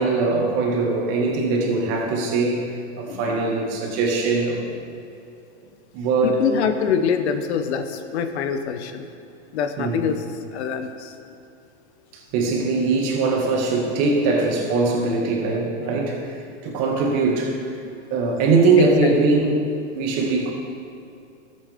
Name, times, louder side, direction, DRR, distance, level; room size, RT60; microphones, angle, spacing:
voice 1, 0.0-2.7 3.0-4.6 5.9-6.4 9.8-10.1 12.1-17.6 18.1-19.6 19.9-20.5, right 3 dB, 45° right, -1 dB, 2.2 m, -21 dB
voice 2, 3.1-3.6 6.2-9.1 9.5-10.2 10.5-11.1 18.8-19.1, left 7 dB, 65° left, 8 dB, 1.0 m, -25 dB
13.5 x 8.1 x 3.6 m, 2.5 s
hypercardioid pair, 120°, 35 cm